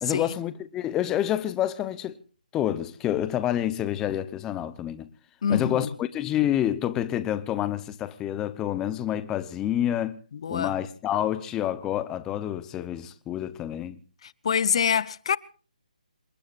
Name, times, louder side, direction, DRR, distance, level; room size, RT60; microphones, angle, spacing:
voice 1, 0.0-2.2 2.5-5.1 5.5-10.2 10.5-14.0, left 11 dB, 10° left, 0.8 m, -28 dB
voice 2, 5.4-5.9 10.4-10.8 14.2-15.4, left 7 dB, 40° left, 0.7 m, -25 dB
27.5 x 20.0 x 2.5 m
hypercardioid pair, 165°, 5 cm